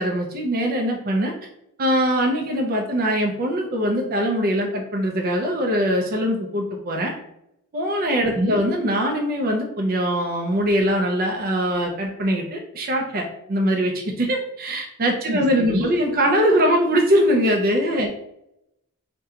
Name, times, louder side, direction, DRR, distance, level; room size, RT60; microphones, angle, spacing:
voice 1, 0.0-1.3 1.8-7.1 7.7-18.1, equal, 45° right, 1 dB, 0.5 m, -22 dB
voice 2, 15.3-16.0, equal, 80° right, 2 dB, 0.7 m, -25 dB
2.8 x 2.2 x 3.6 m, 0.81 s
head